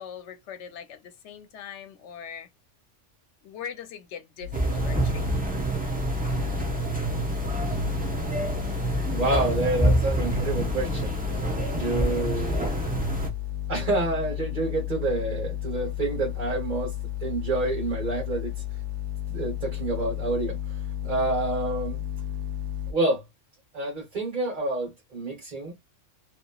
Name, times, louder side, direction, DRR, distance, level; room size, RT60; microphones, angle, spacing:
voice 1, 0.0-2.5 3.4-5.4, left 8 dB, 70° left, 0.9 m, -41 dB
sound 1, 4.4-22.9, left 14 dB, 75° right, 0.9 m, -33 dB
sound 2, 4.5-13.3, right 2 dB, 10° right, 0.5 m, -27 dB
voice 2, 9.1-12.7 13.7-16.9 17.2-18.5 19.3-22.0 22.9-23.2 23.7-25.7, right 2 dB, 40° right, 1.1 m, -28 dB
2.8 x 2.4 x 2.3 m
omnidirectional pair, 1.3 m